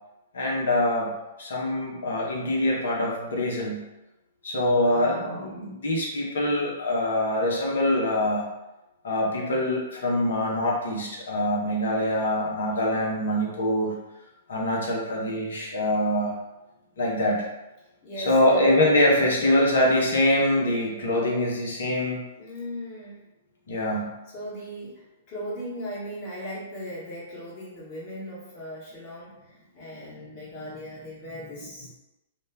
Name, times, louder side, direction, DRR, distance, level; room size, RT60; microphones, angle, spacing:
voice 1, 0.3-1.1 1.4-3.8 4.4-8.5 9.0-13.9 14.5-16.3 17.0-17.5 18.3-22.2 23.7-24.1, left 1 dB, 65° left, -3 dB, 0.8 m, -24 dB
voice 2, 4.7-5.5 18.0-18.8 19.3-20.0 22.4-23.2 24.3-31.9, equal, 35° left, -8 dB, 1.0 m, -36 dB
2.3 x 2.1 x 3.4 m, 0.98 s
figure-of-eight pair, 110°, 0 cm